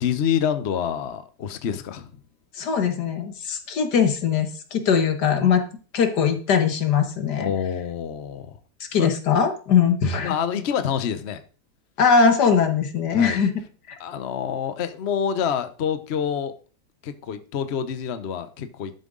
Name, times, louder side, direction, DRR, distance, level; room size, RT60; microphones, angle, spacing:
voice 1, 0.0-2.1 7.4-8.6 9.0-9.1 10.2-11.4 13.1-13.4 14.0-16.5 17.0-18.9, left 8 dB, 50° left, 0.9 m, -27 dB
voice 2, 2.5-5.6 5.9-7.5 8.8-10.3 12.0-14.0, left 6 dB, 75° left, 1.9 m, -21 dB
12.5 x 7.5 x 3.8 m
omnidirectional pair, 1.8 m